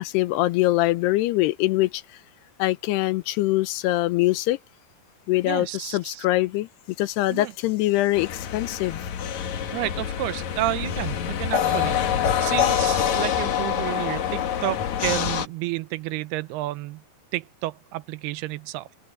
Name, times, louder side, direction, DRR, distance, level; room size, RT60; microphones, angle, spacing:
voice 1, 0.0-2.0 2.6-4.6 5.3-6.7 7.0-9.0, left 17 dB, 85° left, 2.9 m, -23 dB
voice 2, 5.4-6.3 7.3-7.5 9.7-17.0 17.3-18.9, right 18 dB, 85° right, 2.6 m, -31 dB
sound 1, 8.2-15.5, left 9 dB, 60° left, 2.3 m, -25 dB
omnidirectional pair, 4.6 m